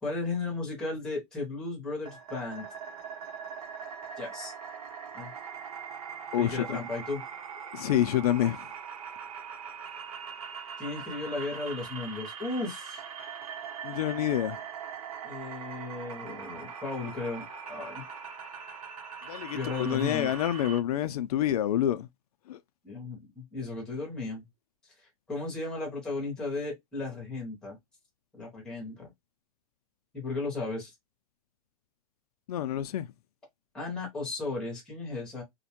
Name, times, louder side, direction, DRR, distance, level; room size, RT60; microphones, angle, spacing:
voice 1, 0.0-2.6 4.2-4.5 5.1-5.3 6.4-7.2 10.8-13.0 15.2-18.0 19.5-20.3 22.8-24.4 25.3-27.8 28.3-29.1 30.1-30.9 33.7-35.4, left 3 dB, 5° left, 0.7 m, -35 dB
sound 1, 2.1-20.8, right 7 dB, 75° right, 0.8 m, -41 dB
voice 2, 6.3-6.6 7.7-8.7 13.8-14.6 19.3-22.1 22.5-22.6 32.5-33.1, left 11 dB, 90° left, 0.4 m, -27 dB
2.5 x 2.1 x 2.8 m
supercardioid pair, 175°, 19 cm